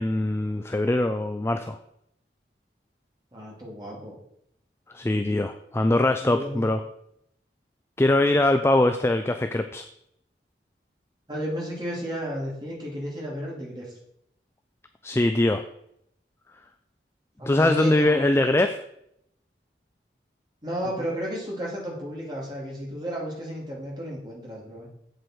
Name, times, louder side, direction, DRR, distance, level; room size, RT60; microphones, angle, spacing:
voice 1, 0.0-1.8 4.9-6.8 8.0-9.9 15.0-15.6 17.4-18.8, left 1 dB, 15° left, 7 dB, 0.3 m, -22 dB
voice 2, 3.3-4.2 6.2-6.7 11.3-13.9 17.4-18.2 20.6-24.9, equal, 25° right, -3 dB, 2.6 m, -33 dB
7.9 x 7.8 x 4.4 m, 0.74 s
head